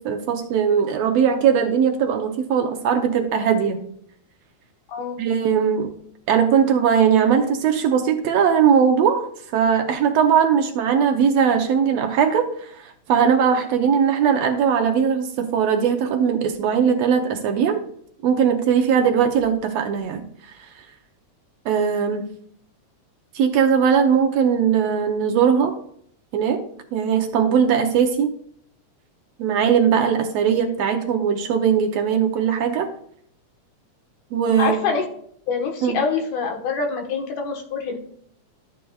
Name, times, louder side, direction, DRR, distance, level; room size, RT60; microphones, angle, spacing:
voice 1, 0.0-3.8 5.2-5.9 6.3-17.8 18.2-20.2 21.7-22.3 23.3-25.8 26.3-26.6 26.9-28.3 29.4-32.9 34.3-34.8 35.8-36.0, right 7 dB, 70° right, 5 dB, 1.8 m, -19 dB
voice 2, 34.6-35.1 35.5-38.0, left 5 dB, 80° left, 3 dB, 2.8 m, -25 dB
13.0 x 7.9 x 2.3 m, 0.64 s
omnidirectional pair, 3.4 m